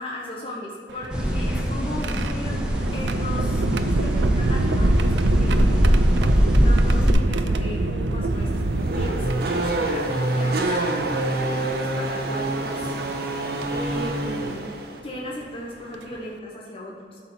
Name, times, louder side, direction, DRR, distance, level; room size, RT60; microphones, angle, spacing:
voice 1, 0.0-2.6 2.9-5.7 6.6-13.4 13.7-14.7 15.0-17.2, left 1 dB, 30° left, -4 dB, 1.0 m, -37 dB
sound 1, 0.9-10.2 11.1-11.2 12.6-12.9 13.6-13.8 15.4-15.5 15.9-16.2, right 2 dB, 75° right, 0.5 m, -25 dB
sound 2, 1.1-7.1, equal, 5° right, 1.0 m, -22 dB
Race car auto racing / Accelerating revving vroom, 8.3-15.0, right 2 dB, 55° right, 1.0 m, -26 dB
11.5 x 4.4 x 5.7 m, 2.5 s
head